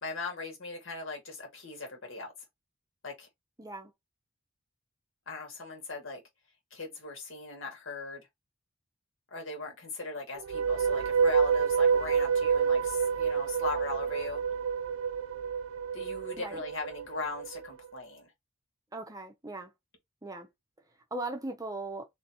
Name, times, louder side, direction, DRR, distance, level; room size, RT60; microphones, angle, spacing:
voice 1, 0.0-2.3 3.0-3.3 5.3-6.2 6.7-8.3 9.3-14.4 15.9-18.3, left 3 dB, 70° left, 1.9 m, -39 dB
voice 2, 3.6-3.9 16.4-16.6 18.9-19.7 20.2-20.5 21.1-22.1, right 2 dB, 15° right, 0.6 m, -38 dB
sound 1, 10.4-17.7, right 6 dB, 80° right, 0.5 m, -28 dB
3.9 x 3.2 x 2.8 m
head